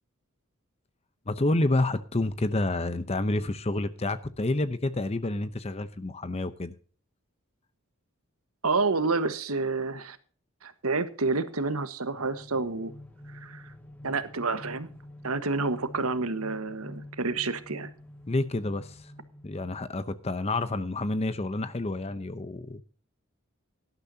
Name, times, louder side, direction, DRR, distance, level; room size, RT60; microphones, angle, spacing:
voice 1, 1.3-6.7 18.3-19.1 19.4-22.8, left 2 dB, 30° left, 12 dB, 0.7 m, -29 dB
voice 2, 8.6-10.2 10.6-12.9 13.3-13.7 14.0-14.9 15.2-17.9, right 3 dB, 85° right, 12 dB, 1.4 m, -29 dB
sound 1, 12.1-20.0, left 1 dB, 5° left, 1.8 m, -47 dB
18.0 x 12.0 x 2.8 m, 0.41 s
head